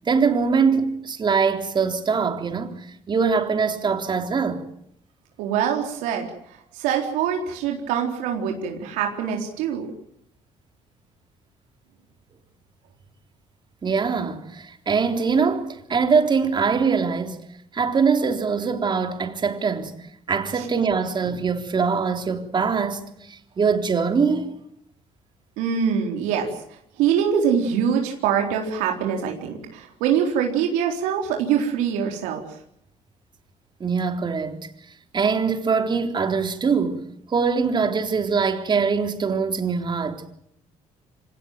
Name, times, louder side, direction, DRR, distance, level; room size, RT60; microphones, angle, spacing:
voice 1, 0.1-2.8 3.1-4.6 13.8-17.4 17.7-19.9 20.3-24.5 33.8-34.7 35.1-37.0 37.3-40.2, right 5 dB, 35° right, 3.6 m, -23 dB
voice 2, 5.4-6.3 6.7-9.9 20.5-20.7 25.6-26.5 27.0-32.4, right 8 dB, 90° right, 4.0 m, -24 dB
25.5 x 18.0 x 9.2 m
cardioid pair, 95°, 13 cm